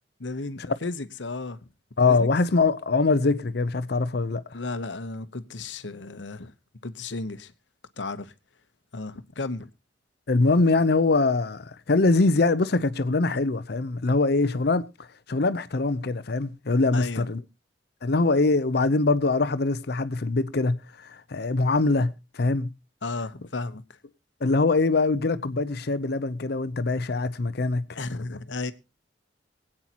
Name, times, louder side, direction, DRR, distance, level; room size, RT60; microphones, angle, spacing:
voice 1, 0.2-1.6 2.1-2.3 4.5-6.5 6.8-7.5 8.0-8.3 8.9-9.7 16.9-17.2 23.0-23.8 28.0-28.7, left 3 dB, 80° left, 1.0 m, -33 dB
voice 2, 2.0-4.6 10.3-17.4 18.0-22.7 24.4-28.0, left 3 dB, 60° left, 0.7 m, -23 dB
24.5 x 8.8 x 2.9 m
head